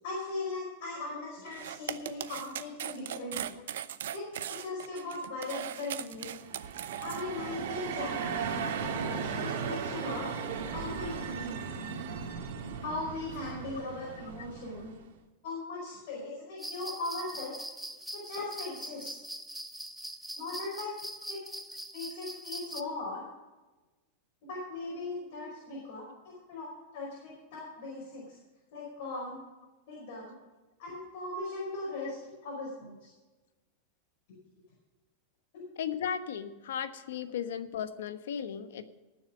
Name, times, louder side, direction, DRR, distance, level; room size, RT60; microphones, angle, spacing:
voice 1, 0.0-3.6 4.1-4.2 4.5-6.3 7.0-8.4 9.2-10.3 10.7-11.6 12.8-14.9 15.4-17.5 18.1-19.1 20.4-20.9 21.3-21.4 21.9-23.2 24.4-28.4 28.7-29.4 29.9-30.3 30.8-33.1 34.3-34.4 35.5-35.6, left 2 dB, 55° left, -4 dB, 5.1 m, -39 dB
sound 1, 1.5-7.2, right 10 dB, 90° right, 0.7 m, -39 dB
sound 2, 6.3-15.0, right 6 dB, 70° right, 2.0 m, -36 dB
sound 3, 16.6-22.8, right 1 dB, ahead, 0.6 m, -42 dB
voice 2, 35.8-38.8, left 8 dB, 90° left, 10 dB, 1.2 m, -36 dB
19.5 x 7.3 x 5.1 m, 1.2 s
supercardioid pair, 165°, 0 cm